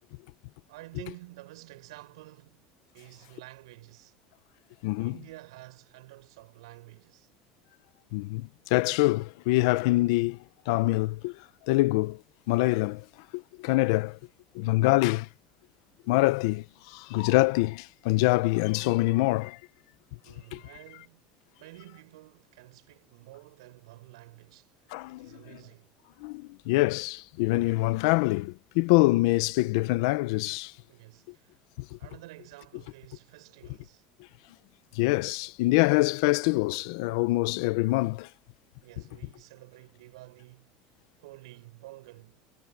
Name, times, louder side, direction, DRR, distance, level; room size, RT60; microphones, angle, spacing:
voice 1, 0.7-4.2 5.0-7.3 20.2-24.9 25.2-25.9 30.9-31.6 32.0-34.0 38.8-40.7 41.2-42.4, right 19 dB, 90° right, 7.4 m, -50 dB
voice 2, 4.8-5.2 8.1-10.4 10.7-11.3 11.7-12.2 12.5-13.0 13.3-14.2 14.5-15.3 16.1-19.6 20.5-20.6 24.9-25.3 26.2-30.7 34.9-38.3, left 21 dB, 80° left, 1.0 m, -25 dB
supercardioid pair, 110°, 3 cm